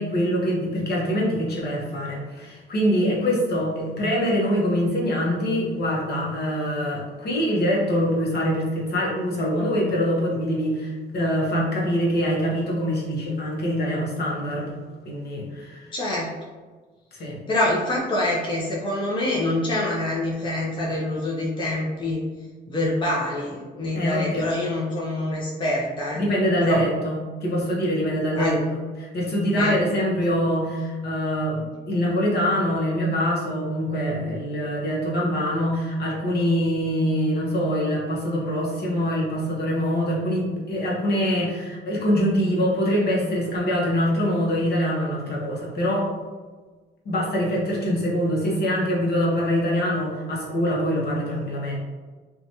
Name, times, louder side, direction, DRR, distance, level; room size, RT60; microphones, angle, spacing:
voice 1, 0.0-14.8 15.0-15.9 17.1-17.4 23.9-24.5 26.1-28.6 29.0-46.1 47.0-51.8, equal, 55° left, -4 dB, 0.9 m, -24 dB
voice 2, 15.9-16.3 17.5-22.2 22.7-26.2 26.6-26.8 28.4-28.6 29.5-29.8, left 1 dB, 25° left, -5 dB, 0.6 m, -25 dB
2.8 x 2.3 x 2.8 m, 1.4 s
cardioid pair, 90°, 20 cm